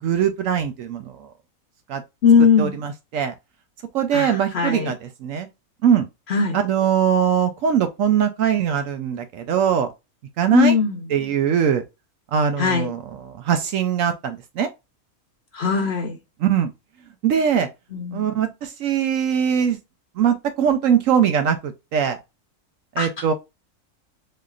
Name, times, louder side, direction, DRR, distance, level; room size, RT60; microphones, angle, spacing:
voice 1, 0.0-1.3 1.9-2.0 2.6-3.3 3.9-5.5 5.8-6.1 6.5-9.9 10.4-10.8 11.1-11.8 12.3-14.7 16.4-16.7 17.2-17.7 18.1-19.8 20.2-22.2 23.0-23.3, right 8 dB, 70° right, 0.8 m, -21 dB
voice 2, 2.2-2.7 4.1-4.9 6.3-6.6 10.5-11.0 12.6-12.9 15.5-16.2 17.9-18.2 23.0-23.1, left 6 dB, 55° left, 0.8 m, -19 dB
3.7 x 3.2 x 2.3 m
omnidirectional pair, 1.6 m